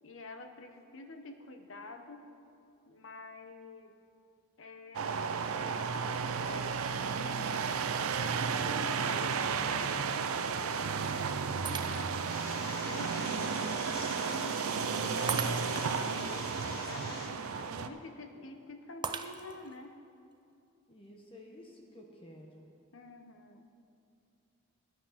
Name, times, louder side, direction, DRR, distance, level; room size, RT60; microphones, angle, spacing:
voice 1, 0.0-2.3 2.9-3.9 4.6-7.7 7.9-9.6 10.6-19.9 22.9-23.7, left 3 dB, 65° left, 6 dB, 0.8 m, -48 dB
sound 1, 4.9-17.9, right 5 dB, 80° right, 0.5 m, -33 dB
Shatter, 11.7-12.4 12.9-13.0 15.3-16.0 19.0-19.8, right 6 dB, 20° right, 0.3 m, -38 dB
sound 2, 12.3-17.3, left 2 dB, 45° left, 1.3 m, -45 dB
voice 2, 20.9-22.7, left 1 dB, 25° left, 0 dB, 0.9 m, -52 dB
11.0 x 8.3 x 5.7 m, 2.6 s
head